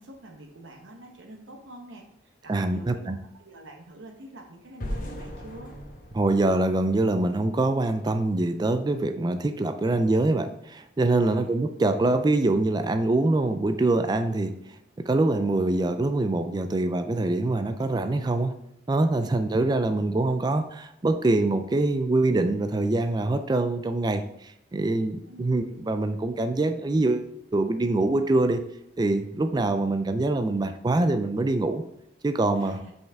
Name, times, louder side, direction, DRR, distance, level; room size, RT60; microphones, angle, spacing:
voice 1, 0.0-5.7 11.3-11.6 19.2-19.3 25.3-25.5 32.6-32.9, right 1 dB, 90° right, 1 dB, 0.9 m, -46 dB
voice 2, 2.5-3.2 6.1-14.6 15.1-18.5 18.9-28.6 29.0-31.8 32.2-32.8, right 2 dB, 20° right, 8 dB, 0.3 m, -24 dB
sound 1, 4.8-7.8, equal, 45° left, 1.0 m, -38 dB
5.7 x 5.3 x 3.4 m, 0.80 s
head